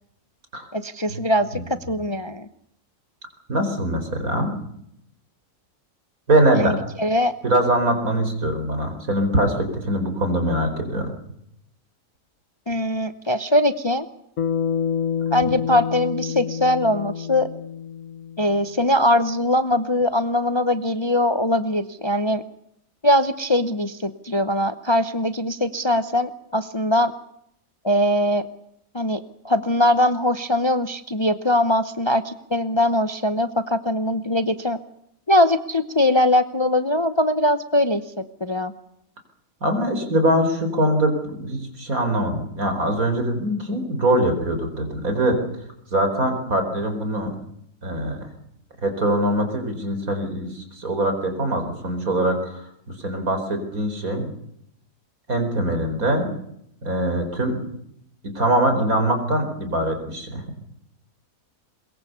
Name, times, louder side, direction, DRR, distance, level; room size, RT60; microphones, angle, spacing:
voice 1, 0.7-2.5 6.6-7.3 12.7-14.1 15.3-17.5 18.4-22.4 23.0-27.1 27.8-28.5 28.9-34.8 35.3-38.7, left 1 dB, 25° left, 11 dB, 0.7 m, -21 dB
voice 2, 3.5-4.5 6.3-6.8 7.4-11.1 39.6-45.4 45.9-47.3 47.8-48.3 48.8-54.3 55.3-56.3 56.8-57.6 58.2-60.4, right 1 dB, 70° right, 6 dB, 5.0 m, -23 dB
Bass guitar, 14.4-18.8, left 7 dB, 65° left, 1.6 m, -28 dB
22.5 x 22.0 x 6.9 m, 0.74 s
omnidirectional pair, 1.5 m